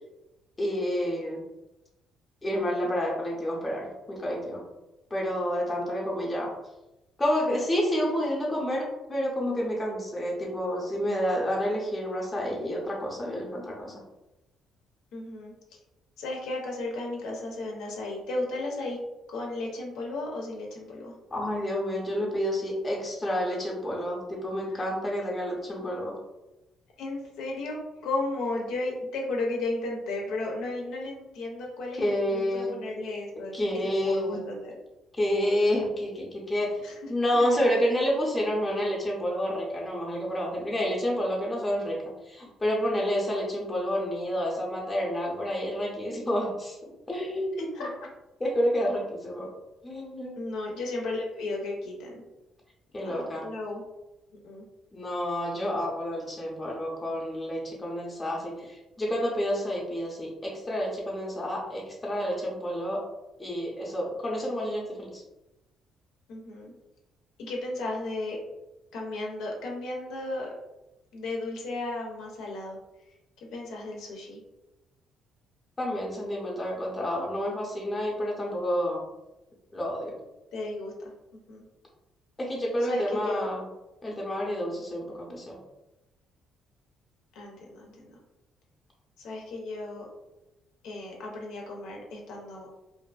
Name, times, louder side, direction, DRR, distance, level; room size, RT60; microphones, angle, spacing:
voice 1, 0.6-1.4 2.4-4.6 5.1-6.5 7.2-14.0 21.3-26.2 32.0-32.8 33.4-34.5 35.2-36.8 37.1-47.9 48.4-49.5 49.8-50.4 52.9-53.5 54.9-63.0 63.4-65.2 75.8-79.1 79.7-80.2 82.4-83.6 84.0-85.6, equal, 15° left, -3 dB, 0.7 m, -29 dB
voice 2, 15.1-15.5 16.2-19.0 19.3-21.1 24.7-24.8 27.0-33.6 33.8-34.8 36.8-37.4 47.6-47.9 50.3-52.2 52.9-53.8 54.4-54.6 66.3-66.7 67.4-68.4 68.9-70.5 71.1-72.8 73.5-74.4 80.5-81.1 81.5-81.6 82.8-83.5 85.3-85.4 87.3-88.2 89.2-90.1 90.8-92.7, left 2 dB, 80° left, -1 dB, 0.6 m, -34 dB
2.5 x 2.5 x 2.3 m, 0.98 s
cardioid pair, 125°, 0 cm